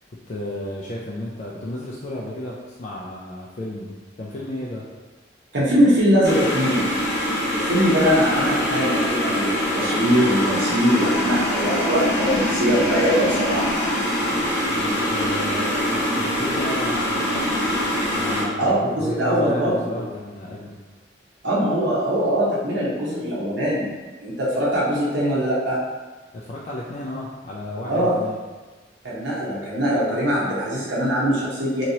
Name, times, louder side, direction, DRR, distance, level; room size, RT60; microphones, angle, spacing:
voice 1, 0.1-4.8 14.7-17.6 18.2-20.8 26.3-28.4, left 1 dB, 40° left, -5 dB, 0.3 m, -33 dB
voice 2, 5.5-6.9 7.5-13.7 18.6-20.0 21.4-23.9 24.2-25.8 27.9-28.3 29.0-31.8, equal, 70° right, -7 dB, 0.8 m, -22 dB
sound 1, 6.2-18.4, equal, 65° left, 0.7 m, -23 dB
2.9 x 2.8 x 2.7 m, 1.3 s
head